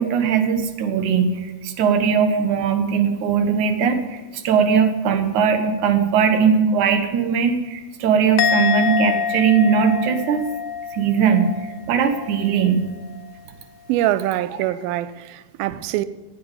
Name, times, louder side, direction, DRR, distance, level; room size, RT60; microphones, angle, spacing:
voice 1, 0.0-10.4 10.9-12.9, right 6 dB, 65° right, 2.2 m, -19 dB
Musical instrument, 8.4-11.8 12.0-12.5, left 8 dB, 90° left, 1.9 m, -25 dB
voice 2, 13.9-16.0, right 14 dB, 80° right, 2.1 m, -24 dB
18.0 x 9.0 x 5.4 m
omnidirectional pair, 4.8 m